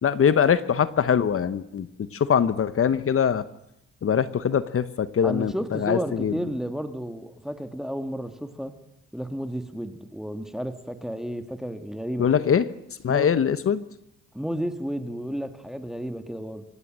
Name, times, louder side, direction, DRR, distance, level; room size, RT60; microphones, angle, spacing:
voice 1, 0.0-3.4 4.0-6.3 12.2-12.6 13.0-13.8, left 7 dB, 45° left, 14 dB, 1.1 m, -22 dB
voice 2, 5.2-8.7 9.1-12.5 13.1-13.3 14.3-16.6, equal, ahead, 8 dB, 1.8 m, -32 dB
25.0 x 16.5 x 7.6 m, 0.78 s
cardioid pair, 90°, 30 cm